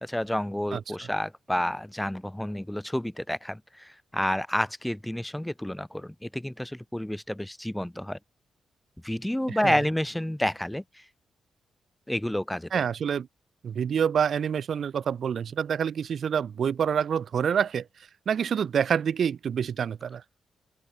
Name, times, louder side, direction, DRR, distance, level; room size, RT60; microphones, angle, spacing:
voice 1, 0.0-8.2 9.0-11.0 12.1-12.8, left 1 dB, 5° left, 0.5 m, -30 dB
voice 2, 12.7-13.3 13.6-17.9 18.3-20.2, right 7 dB, 65° right, 0.9 m, -27 dB
open air
cardioid pair, 60°, 0 cm